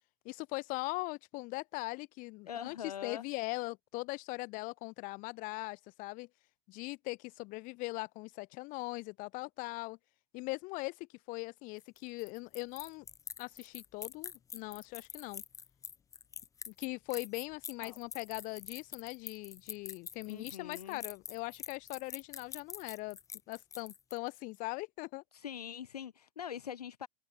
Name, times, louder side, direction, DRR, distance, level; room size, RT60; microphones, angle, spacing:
voice 1, 0.2-6.3 6.7-10.0 10.3-13.1 13.4-15.4 16.7-23.2 23.5-25.2, left 24 dB, 45° left, 2.1 m, -40 dB
voice 2, 2.5-3.2 17.8-18.0 20.3-21.0 25.3-27.1, left 9 dB, 75° left, 0.7 m, -43 dB
sound 1, 11.8-24.4, left 7 dB, 15° left, 0.6 m, -46 dB
open air
figure-of-eight pair, 90°, 20 cm